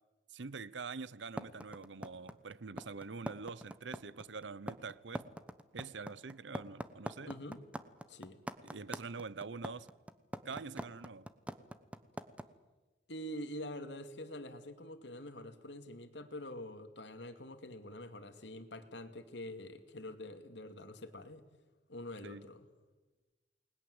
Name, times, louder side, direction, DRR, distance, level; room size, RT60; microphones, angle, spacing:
voice 1, 0.3-5.2 5.7-7.3 8.6-9.9 10.4-11.3 22.2-22.5, right 4 dB, 80° right, 0.8 m, -45 dB
sound 1, 1.4-12.4, right 1 dB, 5° right, 1.0 m, -42 dB
voice 2, 7.2-7.6 8.1-8.4 13.1-21.5 21.9-22.7, left 1 dB, 75° left, 2.4 m, -46 dB
29.0 x 20.5 x 8.0 m
head